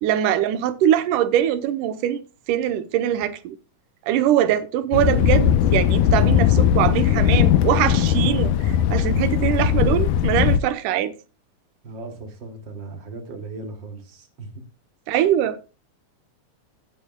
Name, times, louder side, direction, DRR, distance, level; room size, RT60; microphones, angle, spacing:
voice 1, 0.0-2.2 2.5-3.6 4.1-11.1 15.1-15.6, right 11 dB, 90° right, 2.4 m, -22 dB
Thunder, 4.9-10.6, left 9 dB, 80° left, 2.2 m, -19 dB
voice 2, 11.8-14.5, right 3 dB, 40° right, 2.8 m, -37 dB
16.0 x 8.6 x 2.2 m
omnidirectional pair, 3.6 m